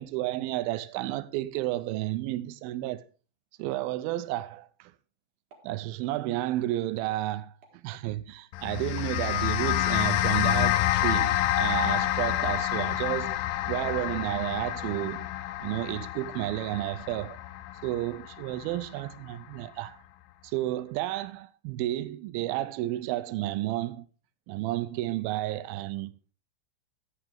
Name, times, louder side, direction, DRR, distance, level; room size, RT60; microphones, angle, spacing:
voice 1, 0.0-3.0 3.6-4.9 5.6-7.5 7.8-13.4 13.7-15.3 15.6-17.4 17.8-20.0 20.4-24.1 24.5-26.2, right 15 dB, 85° right, 2.4 m, -31 dB
sound 1, 5.5-5.7 6.0-6.1 6.6-6.7 7.0-7.1 7.6-7.8 8.3-8.4 9.0-9.2 9.7-9.8 10.2-10.4 10.9-11.1 11.7-12.1 12.6-12.7 13.2-13.3 13.8-13.9, right 4 dB, 60° right, 3.0 m, -51 dB
sound 2, 8.5-19.1, left 14 dB, 80° left, 2.3 m, -28 dB
11.5 x 8.9 x 3.5 m
omnidirectional pair, 4.3 m